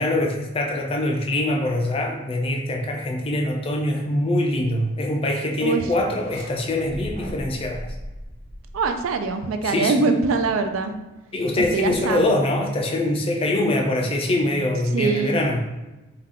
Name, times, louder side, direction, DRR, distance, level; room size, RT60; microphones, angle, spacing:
voice 1, 0.0-7.9 9.6-9.9 11.3-15.6, left 1 dB, 30° left, 2 dB, 0.3 m, -23 dB
sound 1, 6.1-6.5 6.8-9.4, equal, 35° right, 1.2 m, -37 dB
voice 2, 8.7-11.0 11.6-12.4 14.9-15.4, right 4 dB, 90° right, 8 dB, 0.4 m, -23 dB
3.5 x 2.2 x 3.5 m, 1.1 s
head